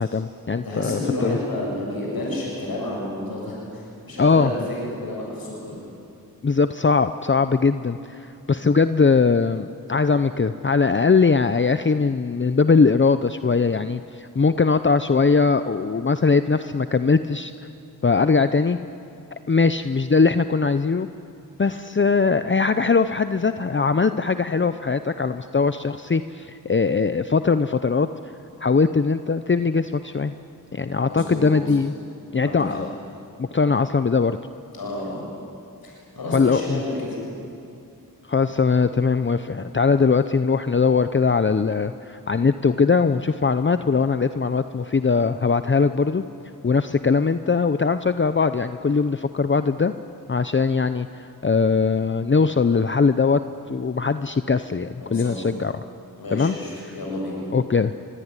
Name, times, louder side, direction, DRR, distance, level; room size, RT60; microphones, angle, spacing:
voice 1, 0.0-1.4 4.2-4.5 6.4-17.5 18.0-18.8 19.5-21.1 21.6-28.1 28.6-30.3 30.7-32.0 32.3-32.9 33.4-34.4 36.3-36.8 38.3-46.2 46.6-49.9 50.3-53.4 53.7-55.7 56.3-56.5 57.5-57.9, left 4 dB, 35° left, 11 dB, 0.8 m, -20 dB
voice 2, 0.6-5.9 31.0-31.8 32.3-32.8 34.7-35.2 35.8-37.2 55.0-55.4 56.2-57.4, left 1 dB, 85° left, -3 dB, 7.7 m, -30 dB
24.5 x 23.5 x 9.9 m, 2.6 s
wide cardioid pair, 65°, 35 cm